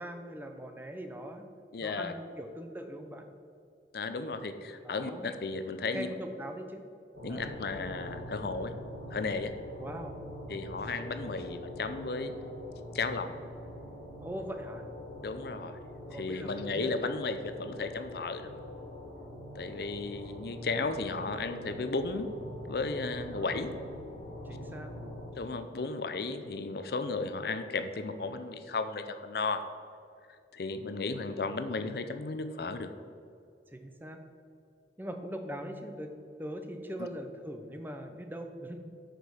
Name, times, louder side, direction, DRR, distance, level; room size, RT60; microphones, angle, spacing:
voice 1, 0.0-1.5 1.8-3.3 4.8-5.3 5.9-6.8 7.3-7.5 9.8-10.2 14.2-14.8 16.0-16.9 23.3-23.5 24.4-24.9 33.7-34.2 35.0-36.1 36.4-39.0, equal, 10° right, 5 dB, 0.6 m, -41 dB
voice 2, 1.7-2.1 3.9-6.1 7.2-8.7 9.1-9.5 10.5-12.3 12.9-13.3 15.2-15.8 16.1-18.6 19.6-22.3 22.7-23.7 25.3-29.6 30.5-32.9, left 3 dB, 60° left, 9 dB, 0.5 m, -34 dB
sound 1, 7.1-25.3, left 1 dB, 80° right, 2.2 m, -44 dB
8.6 x 5.3 x 6.2 m, 2.5 s
head